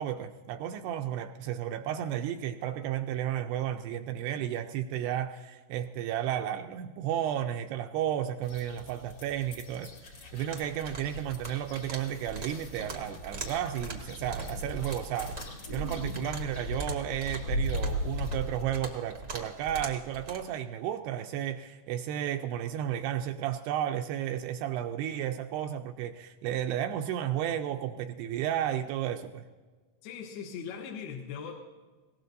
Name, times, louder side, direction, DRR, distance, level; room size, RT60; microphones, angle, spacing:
voice 1, 0.0-29.5, right 10 dB, 80° right, 6 dB, 2.5 m, -33 dB
sound 1, 8.4-18.6, equal, 45° left, 2.1 m, -38 dB
sound 2, 10.5-20.4, right 3 dB, 65° right, 0.9 m, -42 dB
voice 2, 30.0-31.6, left 7 dB, 75° left, 0 dB, 2.9 m, -39 dB
20.5 x 18.0 x 2.7 m, 1.4 s
omnidirectional pair, 5.0 m